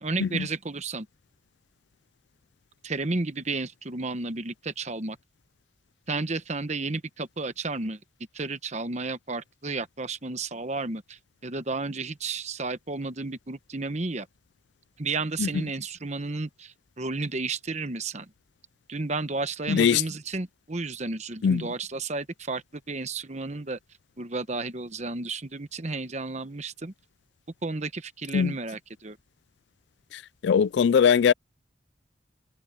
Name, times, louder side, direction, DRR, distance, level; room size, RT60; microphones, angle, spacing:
voice 1, 0.0-1.1 2.8-5.2 6.1-8.0 8.3-14.3 15.0-18.3 18.9-23.8 24.2-26.9 27.6-29.2, right 3 dB, 35° right, 1.0 m, -32 dB
voice 2, 19.7-20.0 21.4-21.7 28.3-28.5 30.1-31.3, left 7 dB, 65° left, 0.3 m, -21 dB
head